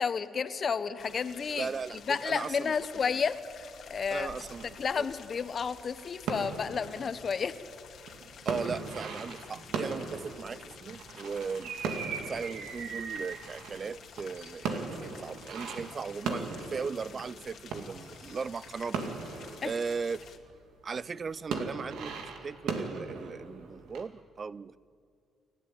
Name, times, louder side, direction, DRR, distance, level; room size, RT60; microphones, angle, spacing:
voice 1, 0.0-1.7 2.1-3.6 3.9-4.3 4.8-7.5 19.6-19.7, left 6 dB, 45° left, 1.1 m, -31 dB
sound 1, 1.0-20.4, left 7 dB, 65° left, 2.2 m, -51 dB
voice 2, 1.5-2.7 3.1-3.2 4.1-5.1 8.5-11.7 12.2-20.3 20.8-24.8, right 5 dB, 40° right, 0.5 m, -38 dB
sound 2, 4.4-20.6 20.9-24.0, right 4 dB, 85° right, 2.4 m, -39 dB
29.0 x 13.0 x 8.9 m
cardioid pair, 90°, 0 cm